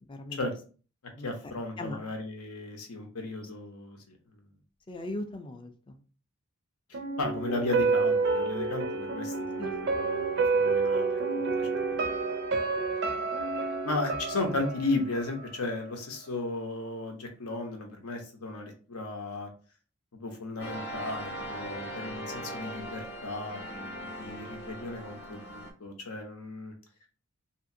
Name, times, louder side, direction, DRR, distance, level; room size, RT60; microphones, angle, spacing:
voice 1, 0.0-0.4 1.2-1.3 1.8-2.0 4.9-6.0 9.6-9.8, left 1 dB, 20° left, 6 dB, 0.3 m, -39 dB
voice 2, 1.2-4.0 6.9-12.1 12.9-19.5 20.1-26.7, left 2 dB, 80° left, 4 dB, 0.8 m, -35 dB
sound 1, 6.9-15.9 16.2-16.3, right 4 dB, 50° right, 0.4 m, -29 dB
sound 2, 20.6-25.7, equal, 45° left, 0.7 m, -39 dB
2.8 x 2.5 x 2.6 m, 0.38 s
head